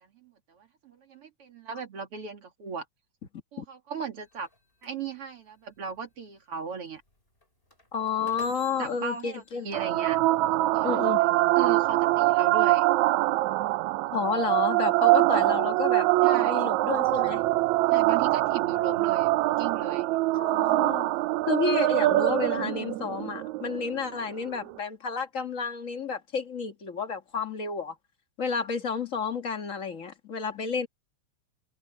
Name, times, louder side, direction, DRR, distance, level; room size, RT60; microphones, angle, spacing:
voice 1, 0.0-2.8 3.5-4.5 4.8-7.0 8.8-10.2 10.7-11.0 11.6-12.9 16.2-16.6 17.9-19.3 19.6-20.1, right 5 dB, 50° right, 3.2 m, -37 dB
sound 1, 4.2-11.2, left 3 dB, 20° left, 6.0 m, -56 dB
voice 2, 7.9-9.7 10.8-11.2 14.1-17.6 20.3-21.1 21.5-28.0 28.4-30.9, left 5 dB, 35° left, 1.3 m, -31 dB
sound 2, 9.7-24.7, right 18 dB, 80° right, 1.9 m, -24 dB
omnidirectional pair, 3.3 m